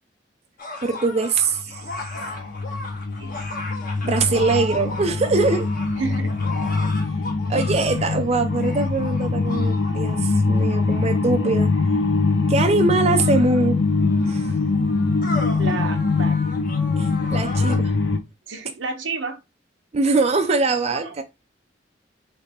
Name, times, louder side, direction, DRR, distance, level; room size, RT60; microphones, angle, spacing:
sound 1, 0.6-11.4 12.3-12.4 13.0-17.8, left 2 dB, 50° left, 1.1 m, -36 dB
voice 1, 0.8-1.8 4.0-5.7 7.5-11.7 12.5-13.9 14.3-14.5 17.0-17.9 19.9-21.2, right 3 dB, 35° right, 0.4 m, -22 dB
sound 2, 1.5-18.2, left 3 dB, 75° left, 0.7 m, -23 dB
voice 2, 5.9-6.5 15.6-16.4 18.5-19.4 20.9-21.2, right 4 dB, 90° right, 1.0 m, -30 dB
3.3 x 3.3 x 4.2 m
head